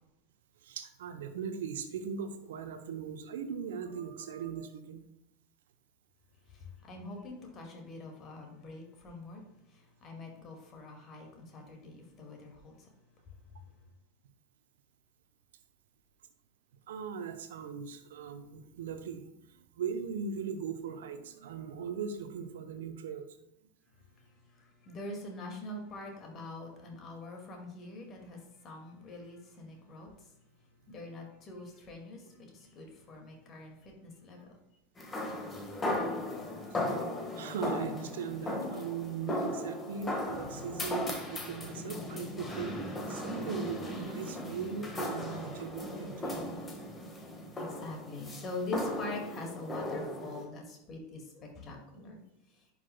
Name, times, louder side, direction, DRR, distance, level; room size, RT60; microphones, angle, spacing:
voice 1, 0.6-5.0 16.9-19.2 19.5-23.3 35.5-35.6 37.3-42.8 43.1-46.5, right 6 dB, 65° right, 9 dB, 0.8 m, -39 dB
voice 2, 6.9-9.4 10.0-12.7 24.9-28.4 28.6-30.1 30.9-32.2 32.7-33.7 34.0-34.4 47.6-52.2, left 2 dB, 35° left, 1 dB, 2.1 m, -43 dB
sound 1, 35.0-50.4, left 1 dB, 20° left, 1.5 m, -37 dB
10.5 x 5.8 x 2.2 m, 0.84 s
figure-of-eight pair, 85°, 0 cm